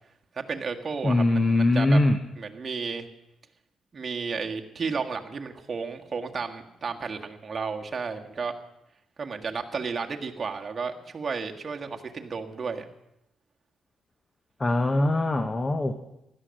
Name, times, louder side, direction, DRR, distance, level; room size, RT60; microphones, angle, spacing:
voice 1, 0.3-2.0 2.4-3.1 3.9-8.5 9.2-12.8, right 5 dB, 35° right, 3 dB, 1.7 m, -33 dB
voice 2, 1.0-2.2 14.6-15.9, left 2 dB, 25° left, 8 dB, 1.2 m, -22 dB
16.0 x 12.0 x 6.6 m, 0.85 s
cardioid pair, 90°, 0 cm